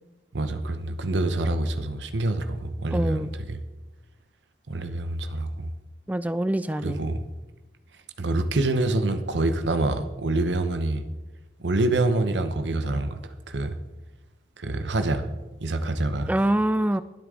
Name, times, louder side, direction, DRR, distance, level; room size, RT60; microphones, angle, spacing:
voice 1, 0.3-3.6 4.7-5.7 6.7-7.2 8.2-11.0 11.6-13.8 14.6-15.3 15.6-16.3, right 2 dB, 85° right, 10 dB, 0.9 m, -26 dB
voice 2, 2.9-3.3 6.1-7.0 16.3-17.0, right 1 dB, 10° right, 14 dB, 0.3 m, -24 dB
22.5 x 8.4 x 3.8 m, 1.1 s
head